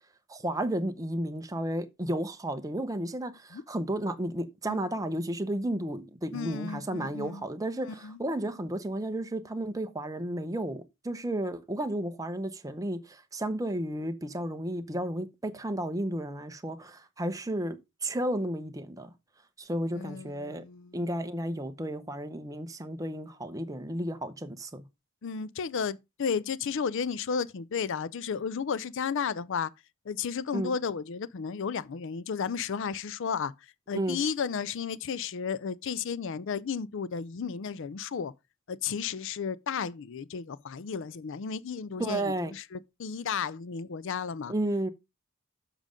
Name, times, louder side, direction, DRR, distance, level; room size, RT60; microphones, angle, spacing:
voice 1, 0.3-19.1 19.6-20.6 20.9-24.8 30.5-30.7 33.9-34.2 42.0-42.5 44.5-44.9, right 1 dB, 15° right, 0.7 m, -33 dB
voice 2, 6.3-7.4 7.9-8.2 19.9-21.1 25.2-29.7 30.1-33.5 33.9-38.3 38.7-44.5, left 6 dB, 60° left, 0.4 m, -33 dB
7.4 x 5.1 x 5.0 m
head